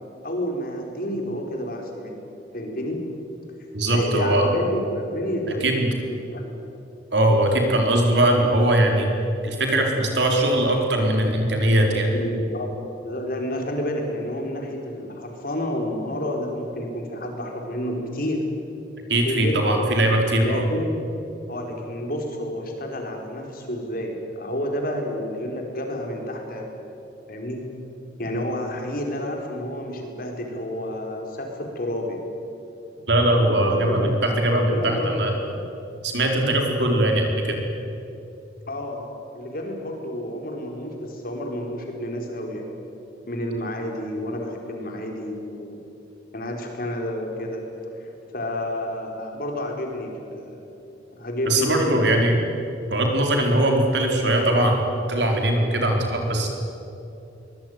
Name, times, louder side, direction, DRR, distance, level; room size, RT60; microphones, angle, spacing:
voice 1, 0.2-2.2 2.5-3.0 3.6-5.7 6.1-6.4 12.1-12.7 13.0-18.5 19.2-19.6 20.4-21.0 21.5-26.7 27.3-27.6 28.2-32.2 33.6-34.2 34.5-35.4 38.7-42.8 43.3-45.8 46.3-47.7 48.0-50.7 51.1-52.2, left 1 dB, 50° left, 2 dB, 4.7 m, -30 dB
voice 2, 3.7-4.5 5.6-5.9 7.1-9.1 9.4-12.1 19.1-20.6 33.1-35.3 36.0-37.6 51.5-52.4 52.9-54.8 55.1-56.5, right 1 dB, 70° right, 2 dB, 4.3 m, -20 dB
23.0 x 21.0 x 9.6 m, 2.8 s
head